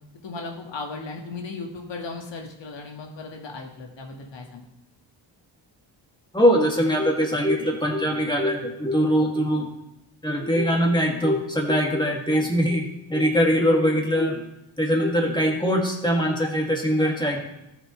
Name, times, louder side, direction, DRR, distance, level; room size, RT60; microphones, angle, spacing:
voice 1, 0.2-4.7, left 3 dB, 65° left, 1 dB, 2.0 m, -36 dB
voice 2, 6.3-9.7 10.2-14.4 14.8-17.4, equal, 10° left, -1 dB, 2.5 m, -22 dB
14.0 x 7.3 x 3.3 m, 0.88 s
cardioid pair, 80°, 48 cm